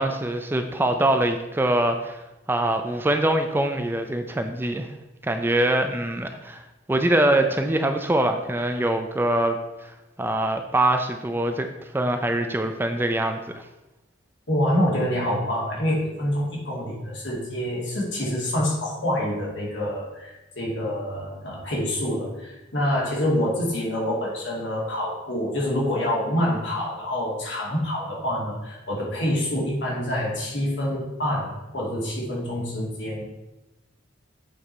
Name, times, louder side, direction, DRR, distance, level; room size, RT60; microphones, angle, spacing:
voice 1, 0.0-2.2 2.5-4.9 5.2-6.6 6.9-11.7 11.9-13.6, right 1 dB, 10° right, 6 dB, 0.4 m, -23 dB
voice 2, 14.5-33.3, left 1 dB, 65° left, -4 dB, 2.4 m, -26 dB
8.1 x 4.8 x 4.1 m, 0.99 s
head